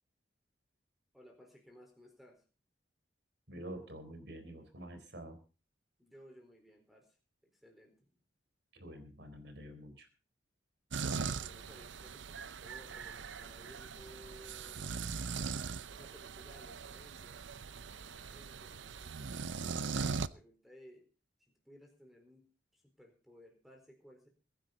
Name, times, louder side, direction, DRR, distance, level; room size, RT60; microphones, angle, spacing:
voice 1, 1.1-2.5 6.0-7.2 7.4-8.2 11.1-15.1 15.9-17.5 17.8-21.1 21.6-22.5 22.7-24.3, equal, ahead, 3 dB, 4.4 m, -59 dB
voice 2, 3.5-5.4 8.7-10.1, right 1 dB, 65° right, 8 dB, 4.0 m, -48 dB
sound 1, 10.9-20.3, right 5 dB, 80° right, 0.7 m, -40 dB
22.5 x 10.5 x 4.1 m, 0.35 s
head